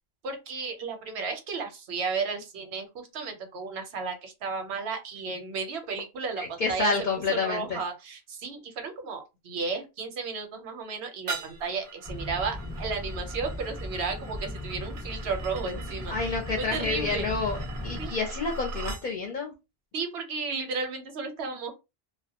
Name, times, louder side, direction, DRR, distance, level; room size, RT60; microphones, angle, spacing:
voice 1, 0.2-6.9 7.3-17.3 18.0-18.2 19.9-21.7, right 4 dB, 90° right, 1.0 m, -34 dB
voice 2, 6.6-7.8 16.1-19.5, left 4 dB, 55° left, 0.6 m, -29 dB
sound 1, 11.3-19.1, right 3 dB, 65° right, 0.7 m, -41 dB
sound 2, 12.1-18.1, left 1 dB, 20° left, 0.8 m, -37 dB
2.2 x 2.1 x 2.8 m
omnidirectional pair, 1.0 m